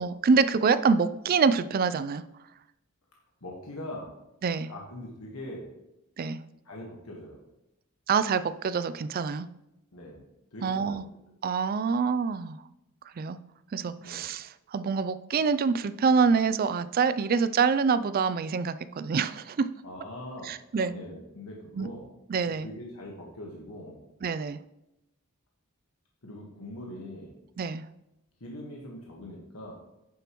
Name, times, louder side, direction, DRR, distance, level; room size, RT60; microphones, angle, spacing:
voice 1, 0.0-2.2 4.4-4.7 6.2-6.4 8.1-9.5 10.6-11.0 11.4-12.6 13.2-13.4 13.7-19.7 20.4-20.9 21.8-21.9 22.3-22.7 24.2-24.6 27.6-27.8, right 5 dB, 45° right, 14 dB, 0.4 m, -26 dB
voice 2, 3.4-4.1 4.7-5.7 6.6-7.4 9.9-10.2 10.5-11.0 14.0-14.2 19.8-20.5 20.8-22.1 22.6-24.0 26.2-27.3 28.4-29.7, left 1 dB, 85° left, -2 dB, 1.5 m, -42 dB
9.9 x 6.8 x 3.0 m, 0.90 s
head